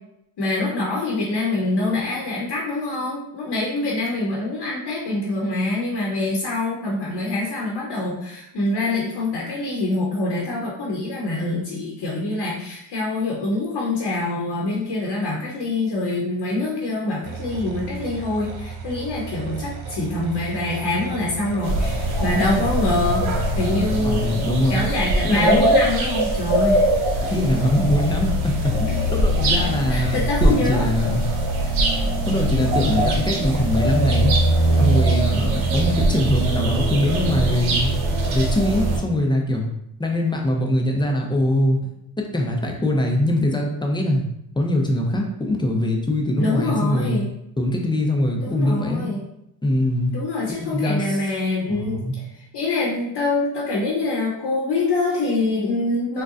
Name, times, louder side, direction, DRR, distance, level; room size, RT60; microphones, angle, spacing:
voice 1, 0.4-23.2 23.5-24.2 24.7-26.8 28.9-29.0 29.9-30.8 46.4-47.2 48.4-49.2 50.1-52.2 52.5-56.2, left 2 dB, 60° left, -4 dB, 0.9 m, -25 dB
sound 1, 17.2-24.0, right 5 dB, 50° right, 0.5 m, -35 dB
sound 2, 21.6-39.0, right 1 dB, 80° right, 0.8 m, -21 dB
voice 2, 24.0-24.8 25.2-25.6 27.3-31.2 32.0-34.4 34.8-37.9 38.3-39.7 40.0-41.8 42.2-44.3 44.6-47.2 47.6-49.1 49.6-50.1 50.6-51.2 51.7-52.2, left 1 dB, 10° left, 1 dB, 0.6 m, -22 dB
3.8 x 2.2 x 2.5 m, 0.81 s
cardioid pair, 70°, 47 cm